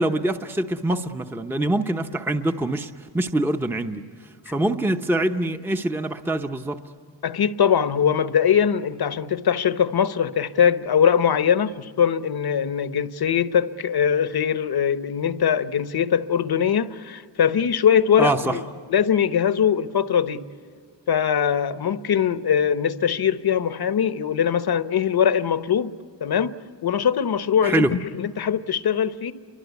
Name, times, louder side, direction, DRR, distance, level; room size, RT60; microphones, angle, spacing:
voice 1, 0.0-4.0 4.5-6.8 18.2-18.6 27.6-27.9, right 1 dB, 5° right, 0.8 m, -24 dB
voice 2, 7.2-20.4 21.1-25.9 26.2-29.3, left 8 dB, 55° left, 0.9 m, -21 dB
29.5 x 24.0 x 8.2 m
wide cardioid pair, 140°, 44 cm